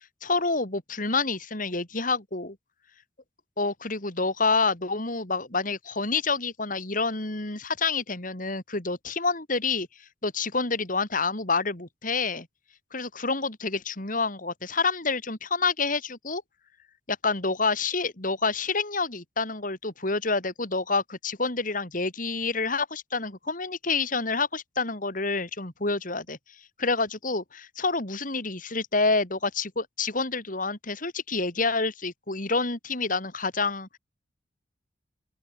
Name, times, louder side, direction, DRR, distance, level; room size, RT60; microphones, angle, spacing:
voice 1, 0.2-2.6 3.6-9.9 10.2-12.5 12.9-16.4 17.1-26.4 26.8-33.9, left 4 dB, 45° left, 3.5 m, -28 dB
open air
head